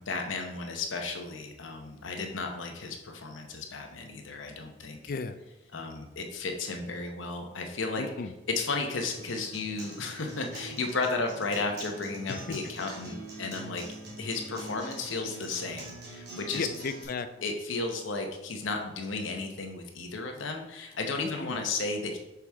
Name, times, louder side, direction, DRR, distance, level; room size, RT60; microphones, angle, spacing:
voice 1, 0.1-5.0 5.7-8.0 8.5-13.8 14.2-16.7 17.4-22.2, left 3 dB, 80° left, 3 dB, 0.9 m, -34 dB
voice 2, 5.1-5.4 8.0-8.3 12.3-12.6 16.5-17.5 21.2-21.6, left 4 dB, 50° left, 10 dB, 0.4 m, -35 dB
Acoustic guitar, 9.1-17.0, right 2 dB, 60° right, 1.6 m, -44 dB
5.9 x 4.7 x 3.5 m, 0.98 s
head